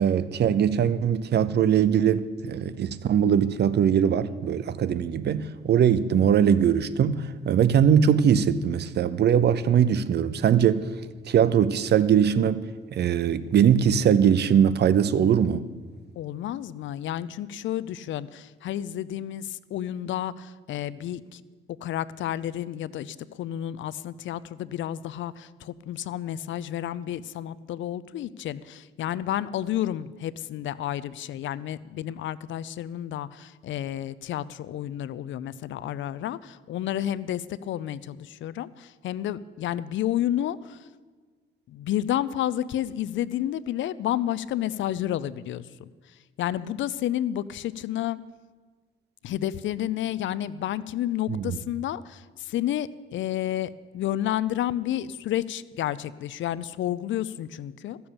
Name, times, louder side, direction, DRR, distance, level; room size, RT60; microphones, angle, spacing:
voice 1, 0.0-10.8 11.3-12.6 12.9-15.7 51.3-51.6, right 8 dB, 60° right, 0.7 m, -21 dB
voice 2, 16.2-21.4 21.8-40.8 41.7-45.9 46.4-48.2 49.2-58.0, left 12 dB, 70° left, 0.5 m, -31 dB
14.5 x 7.0 x 8.7 m
cardioid pair, 90°, 20 cm